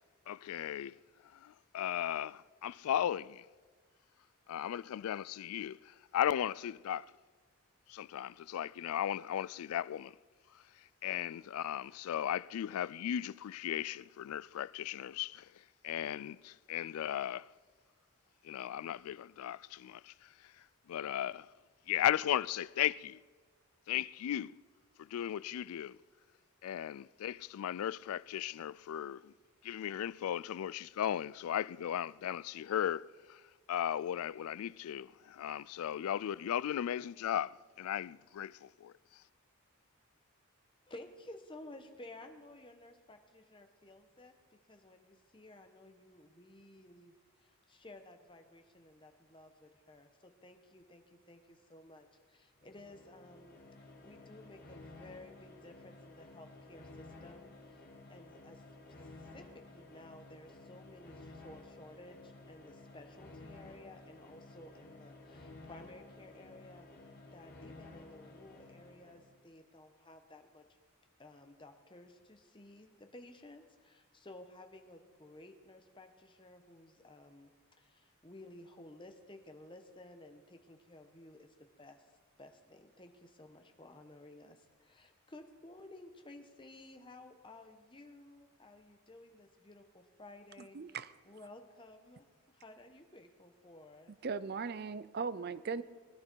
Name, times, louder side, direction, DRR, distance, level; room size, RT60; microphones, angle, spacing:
voice 1, 0.3-1.0 1.3-3.4 4.5-7.1 7.9-10.1 11.0-15.5 15.8-17.5 18.4-20.3 20.9-21.5 21.9-23.2 23.9-24.5 25.0-26.0 26.6-29.3 29.6-33.4 33.7-38.9, left 10 dB, 75° left, 0.3 m, -36 dB
voice 2, 40.9-58.6 59.0-70.6 71.2-77.5 77.8-82.1 82.4-91.0 91.2-94.2, left 1 dB, 20° left, 1.1 m, -55 dB
sound 1, 52.6-69.4, left 2 dB, 45° left, 2.3 m, -54 dB
voice 3, 90.7-91.1 94.2-95.8, right 5 dB, 45° right, 0.5 m, -38 dB
20.5 x 11.0 x 4.6 m
head